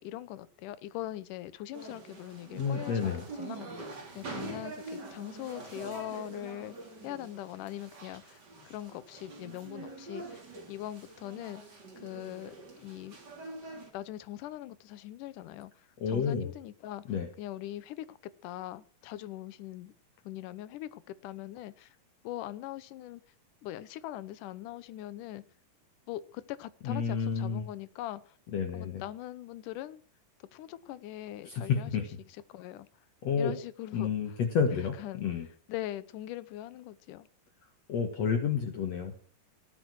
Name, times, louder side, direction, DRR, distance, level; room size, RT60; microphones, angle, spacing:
voice 1, 0.0-3.1 3.4-3.9 4.2-6.8 7.0-10.4 10.7-11.6 12.0-13.2 13.6-17.0 17.4-20.0 20.2-22.0 22.2-23.2 23.6-25.4 26.1-28.4 28.7-30.0 30.4-31.9 32.5-32.9 33.4-34.1 35.0-35.2 35.7-37.3, left 14 dB, 75° left, 16 dB, 2.3 m, -41 dB
sound 1, 1.7-13.9, right 3 dB, 30° right, 3.6 m, -45 dB
voice 2, 2.6-3.3 16.0-16.5 17.1-17.3 26.8-27.7 28.5-29.0 31.4-32.0 33.2-33.5 33.9-35.5 37.9-39.1, left 6 dB, 55° left, 5 dB, 2.4 m, -30 dB
18.0 x 9.0 x 6.3 m, 0.42 s
omnidirectional pair, 4.0 m